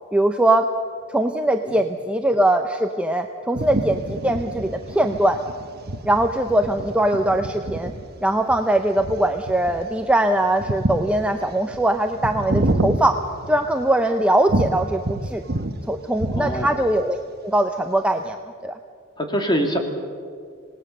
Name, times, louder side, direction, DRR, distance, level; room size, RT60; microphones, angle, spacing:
voice 1, 0.1-0.7 1.1-5.4 6.0-7.9 8.2-13.2 13.5-15.4 15.9-18.4 18.6-18.8, right 1 dB, 5° right, 5 dB, 0.7 m, -21 dB
sound 1, 3.5-14.0 14.5-15.8 16.1-17.0, right 2 dB, 45° right, 1.1 m, -28 dB
voice 2, 16.3-16.8 19.2-19.8, equal, 20° left, 3 dB, 2.5 m, -24 dB
26.0 x 19.0 x 6.7 m, 2.1 s
head